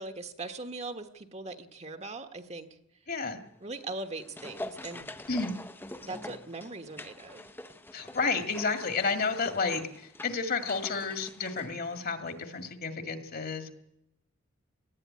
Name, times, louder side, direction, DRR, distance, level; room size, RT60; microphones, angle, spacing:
voice 1, 0.0-2.7 3.6-5.1 6.1-7.4, right 3 dB, 35° right, 8 dB, 1.4 m, -40 dB
voice 2, 3.1-3.4 5.3-5.5 7.9-13.7, left 4 dB, 45° left, 8 dB, 1.9 m, -31 dB
sound 1, 3.8-12.4 12.7-12.8, left 1 dB, 10° left, 0.8 m, -45 dB
19.0 x 15.0 x 9.6 m, 0.81 s
head